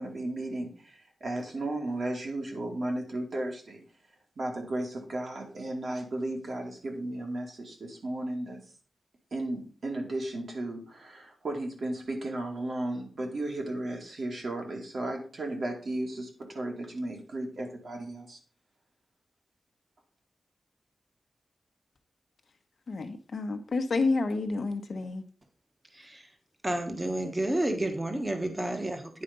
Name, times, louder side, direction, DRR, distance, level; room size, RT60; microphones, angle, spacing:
voice 1, 0.0-3.8 4.4-8.6 9.3-18.4, right 1 dB, 55° right, 2.5 m, -34 dB
voice 2, 22.9-25.2, left 3 dB, 50° left, 1.1 m, -29 dB
voice 3, 25.9-26.3 26.6-29.2, right 1 dB, 15° right, 1.3 m, -31 dB
9.8 x 5.0 x 5.3 m
wide cardioid pair, 160°, 0 cm